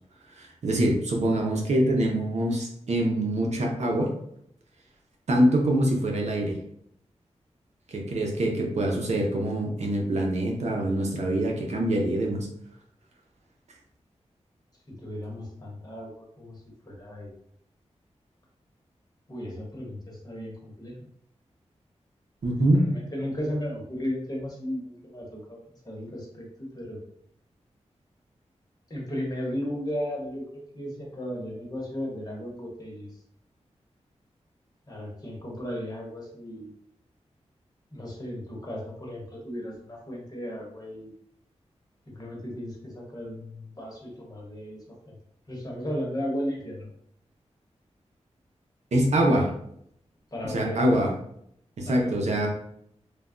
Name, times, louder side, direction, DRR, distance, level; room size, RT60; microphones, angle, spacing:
voice 1, 0.4-4.1 5.3-6.6 7.9-12.5 22.4-22.8 48.9-49.5 50.4-51.1 51.8-52.5, right 1 dB, 75° right, 0 dB, 0.6 m, -24 dB
voice 2, 14.9-16.6 16.8-17.4 19.3-20.9 22.7-25.6 25.8-27.0 28.9-33.1 34.9-36.7 37.9-41.1 42.1-45.2 45.5-46.9 50.3-50.8 51.8-52.4, equal, 35° left, -3 dB, 1.0 m, -35 dB
3.2 x 2.2 x 2.4 m, 0.69 s
wide cardioid pair, 90°, 12 cm